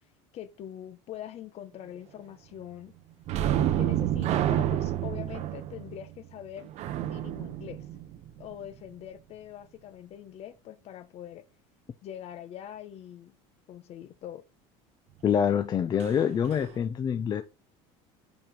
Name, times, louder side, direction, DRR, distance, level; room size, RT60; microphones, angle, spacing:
voice 1, 0.3-2.9 3.5-6.7 7.0-7.9 8.4-11.5 12.0-13.3 13.7-14.4, left 11 dB, 50° left, 0.9 m, -43 dB
sound 1, 3.3-8.7 16.0-16.1 16.5-16.7, right 12 dB, 50° right, 0.7 m, -29 dB
voice 2, 15.2-17.4, left 8 dB, 30° left, 0.5 m, -26 dB
5.2 x 4.5 x 4.6 m
supercardioid pair, 120°, 14 cm